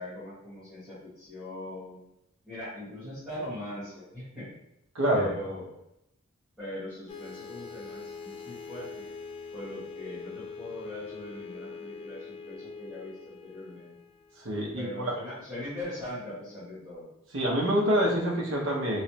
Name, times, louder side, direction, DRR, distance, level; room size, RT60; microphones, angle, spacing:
voice 1, 0.0-2.0 2.4-4.5 5.1-5.7 6.6-9.0 9.5-13.9 14.7-17.1, left 1 dB, ahead, -16 dB, 1.5 m, -40 dB
voice 2, 4.9-5.5 14.4-15.1 17.3-19.0, equal, 65° right, -2 dB, 0.8 m, -27 dB
sound 1, 7.1-14.8, left 4 dB, 25° left, 0.3 m, -43 dB
3.1 x 3.1 x 2.8 m, 0.82 s
head